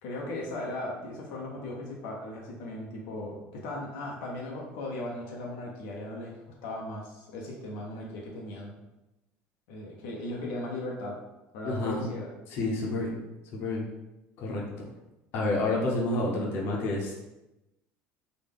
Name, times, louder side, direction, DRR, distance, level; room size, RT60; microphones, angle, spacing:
voice 1, 0.0-6.4 6.6-8.7 9.7-11.2 11.5-12.3, left 1 dB, 80° left, -2 dB, 0.8 m, -37 dB
voice 2, 11.6-12.1 12.5-13.2 13.5-13.9 14.4-14.6 15.3-17.1, left 2 dB, 55° left, -2 dB, 0.9 m, -29 dB
4.0 x 2.3 x 3.5 m, 0.96 s
cardioid pair, 145°, 5 cm